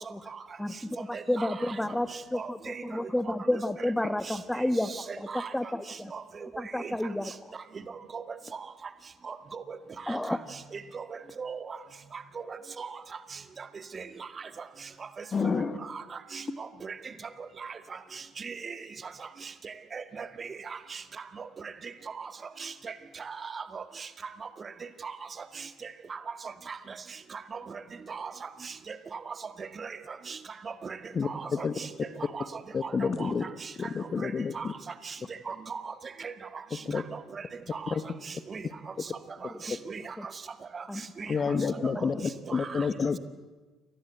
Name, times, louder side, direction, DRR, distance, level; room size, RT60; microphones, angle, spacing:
voice 1, 0.6-6.1 6.6-7.3 10.1-10.4 39.5-39.8 40.2-40.3 40.9-41.0 41.9-42.2, left 1 dB, 5° left, 12 dB, 1.7 m, -31 dB
voice 2, 1.1-1.5 2.3-2.8 4.3-4.4 4.9-5.5 6.1-6.2 6.8-6.9 8.1-8.2 9.3-9.8 10.7-11.0 11.4-11.8 12.5-12.9 13.9-14.0 15.4-15.5 15.9-16.0 16.3-16.4 16.8-16.9 17.6-17.7 18.4-18.8 19.6-21.0 22.2-22.3 22.6-22.9 23.2-23.8 25.0-25.1 26.1-26.2 26.7-26.8 27.5-27.6 28.1-28.3 28.9-29.0 29.6-30.0 30.3-30.4 30.8-31.0 31.2-31.9 32.3-32.4 32.8-33.3 34.2-34.3 34.6-34.7 35.1-35.2 35.5-35.9 36.2-36.3 37.1-37.2 37.7-37.8 38.5-38.6 39.4-40.1 40.7-40.8 41.2-41.3 42.0-42.1 42.5-42.9, right 5 dB, 35° right, 10 dB, 2.0 m, -38 dB
voice 3, 15.3-15.7 31.2-31.3 31.6-31.7 32.7-33.4 33.9-34.5 36.9-37.0 41.3-43.2, left 5 dB, 35° left, 14 dB, 1.4 m, -28 dB
29.0 x 24.0 x 8.1 m, 1.3 s
figure-of-eight pair, 55°, 0 cm